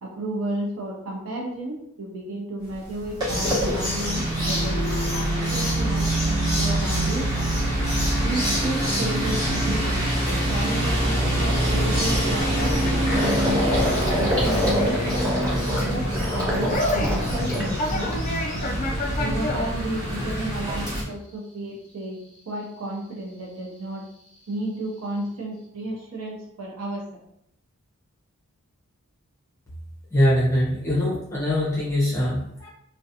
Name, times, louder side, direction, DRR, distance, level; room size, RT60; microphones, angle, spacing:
voice 1, 0.0-6.1 6.5-7.3 8.1-13.6 14.2-16.0 16.3-18.1 19.2-22.2 22.5-24.0 24.5-27.2, right 1 dB, 80° right, -2 dB, 0.6 m, -32 dB
sound 1, 2.9-21.0, right 1 dB, 15° right, 0.9 m, -25 dB
Gurgling, 9.4-9.7 10.1-10.2 10.5-18.5 18.9-19.5, equal, 35° right, 1.3 m, -28 dB
Conversation, 12.1-20.5, left 1 dB, 35° left, 0.3 m, -32 dB
voice 2, 30.1-32.7, left 1 dB, 15° left, -7 dB, 0.7 m, -22 dB
2.4 x 2.2 x 2.6 m, 0.74 s
head